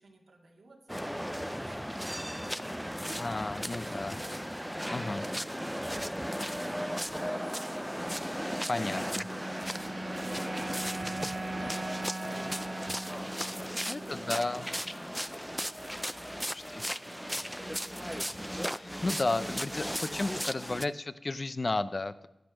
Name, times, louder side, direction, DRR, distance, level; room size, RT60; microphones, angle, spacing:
voice 1, 0.0-9.4 9.9-13.1 13.6-18.2, right 2 dB, 85° right, 0 dB, 2.3 m, -57 dB
sound 1, 0.9-20.8, equal, ahead, 0.4 m, -36 dB
voice 2, 3.2-4.2 4.9-5.2 8.7-9.3 13.5-13.6 13.9-14.7 16.5-16.8 18.7-22.3, left 2 dB, 40° left, 13 dB, 0.6 m, -33 dB
sound 2, 8.7-15.1, right 2 dB, 45° right, 1.6 m, -40 dB
10.5 x 10.5 x 6.4 m, 0.91 s
wide cardioid pair, 70°, 0 cm